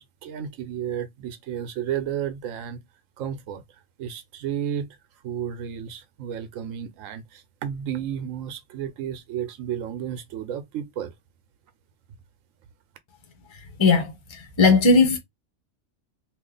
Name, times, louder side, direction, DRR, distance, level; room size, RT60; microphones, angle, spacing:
voice 1, 0.0-2.8 3.2-3.6 4.0-5.0 5.2-11.1, right 9 dB, 85° right, 1.0 m, -32 dB
voice 2, 13.5-15.2, left 4 dB, 25° left, 0.8 m, -19 dB
2.8 x 2.4 x 3.8 m
omnidirectional pair, 1.3 m